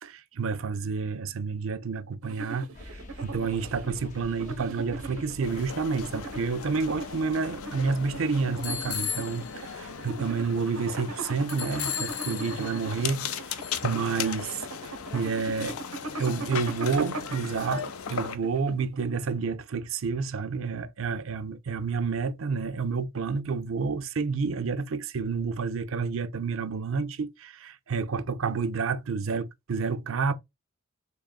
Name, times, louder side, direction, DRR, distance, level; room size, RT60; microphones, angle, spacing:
voice 1, 0.0-14.6 15.1-15.8 16.2-30.3, right 5 dB, 65° right, 0.5 m, -29 dB
sound 1, 2.2-19.1, right 2 dB, 90° right, 0.9 m, -40 dB
sound 2, 2.7-10.0, left 1 dB, 35° left, 0.6 m, -48 dB
sound 3, 5.4-18.4, left 7 dB, 80° left, 0.5 m, -36 dB
3.7 x 3.5 x 2.3 m
head